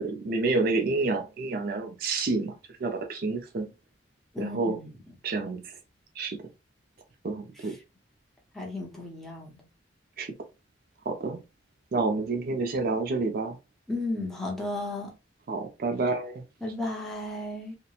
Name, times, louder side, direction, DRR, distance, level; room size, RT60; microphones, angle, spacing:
voice 1, 0.0-2.5 2.8-3.7 4.4-4.8 5.2-5.7 6.2-6.4 7.2-7.8 10.2-10.3 11.1-11.4 11.9-13.6 15.5-16.4, right 3 dB, 50° right, 0.4 m, -28 dB
voice 2, 4.3-5.2 7.5-7.8 8.5-9.7 13.9-15.1 16.6-17.8, left 2 dB, ahead, 0.6 m, -34 dB
2.9 x 2.1 x 2.3 m
head